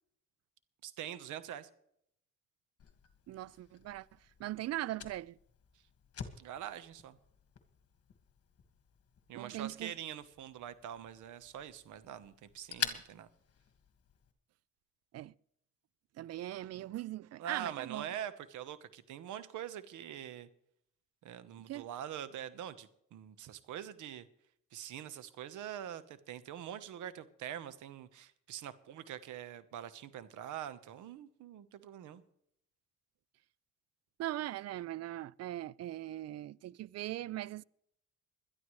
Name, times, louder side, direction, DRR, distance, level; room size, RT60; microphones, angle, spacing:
voice 1, 0.8-1.7 6.4-7.2 9.3-13.3 17.4-20.5 21.2-24.3 24.7-32.2, right 10 dB, 80° right, 1.1 m, -44 dB
Fire, 2.8-14.3, left 8 dB, 50° left, 1.7 m, -47 dB
voice 2, 3.3-4.1 4.4-5.4 9.3-9.9 15.1-15.3 16.2-18.1 21.7-21.9 34.2-37.6, right 14 dB, 55° right, 0.4 m, -40 dB
21.0 x 12.0 x 3.2 m
cardioid pair, 90°, 30 cm